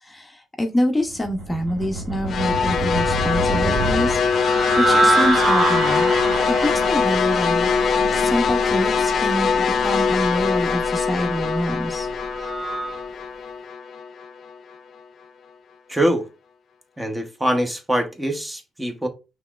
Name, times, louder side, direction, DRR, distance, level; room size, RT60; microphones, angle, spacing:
voice 1, 0.0-4.2 4.8-6.1 6.6-7.7 8.1-12.1, equal, 15° left, 0.8 m, -26 dB
sound 1, 1.1-13.0, right 3 dB, 55° right, 1.0 m, -26 dB
sound 2, 2.3-14.5, left 5 dB, 55° left, 0.5 m, -22 dB
voice 2, 15.9-16.2 17.0-19.1, right 1 dB, 10° right, 0.9 m, -23 dB
5.6 x 3.1 x 2.4 m
cardioid pair, 90°, 0 cm